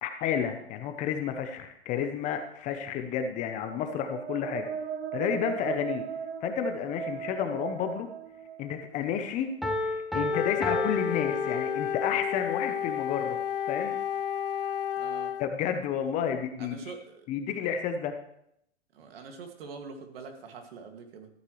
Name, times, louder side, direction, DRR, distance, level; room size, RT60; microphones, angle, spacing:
voice 1, 0.0-4.7 5.1-6.0 6.4-8.1 8.6-9.5 9.8-13.4 13.7-14.0 15.4-16.8 17.3-18.1, left 8 dB, 25° left, 7 dB, 0.7 m, -31 dB
voice 2, 2.7-3.0 15.0-15.3 16.6-17.3 18.9-21.3, right 5 dB, 60° right, 4 dB, 2.2 m, -44 dB
sound 1, 3.5-9.2, right 8 dB, 80° right, 1.0 m, -38 dB
Piano, 9.6-12.2, left 2 dB, ahead, 0.3 m, -31 dB
Wind instrument woodwind instrument, 10.3-15.5, left 9 dB, 55° left, 0.7 m, -31 dB
13.5 x 9.6 x 3.2 m, 0.75 s
hypercardioid pair, 135°, 33 cm